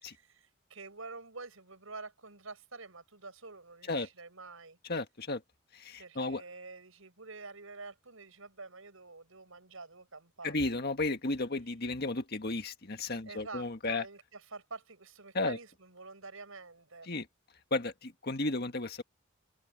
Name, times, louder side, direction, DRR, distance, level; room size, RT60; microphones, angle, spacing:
voice 1, 0.0-4.8 6.0-10.5 13.3-17.1, right 3 dB, 75° right, 6.4 m, -48 dB
voice 2, 4.8-5.4 5.7-6.4 10.4-14.0 15.3-15.6 17.0-17.3 17.7-19.0, left 2 dB, 50° left, 1.7 m, -33 dB
head